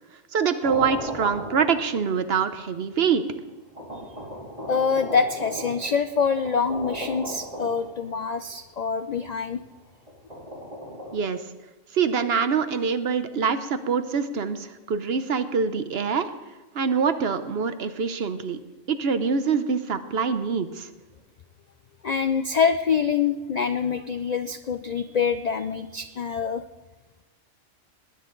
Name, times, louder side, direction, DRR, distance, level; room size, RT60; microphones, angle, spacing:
voice 1, 0.3-3.2 11.1-11.4 11.9-16.3 16.7-18.6 18.9-20.9, right 6 dB, 55° right, 10 dB, 0.9 m, -25 dB
Distant Fireworks, 0.6-2.2 3.0-3.1 3.7-8.3 10.1-11.1, equal, 25° right, 3.6 m, -36 dB
voice 2, 4.7-9.6 22.0-26.6, left 6 dB, 85° left, 10 dB, 0.3 m, -25 dB
19.5 x 10.0 x 3.8 m, 1.2 s
omnidirectional pair, 1.4 m